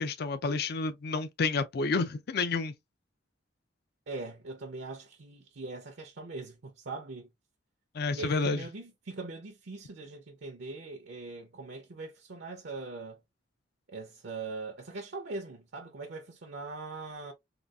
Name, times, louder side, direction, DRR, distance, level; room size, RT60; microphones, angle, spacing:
voice 1, 0.0-2.7 7.9-8.6, left 4 dB, 55° left, 0.4 m, -30 dB
voice 2, 4.1-7.3 8.1-13.2 13.9-17.3, right 3 dB, 65° right, 0.6 m, -41 dB
3.8 x 2.3 x 2.2 m
head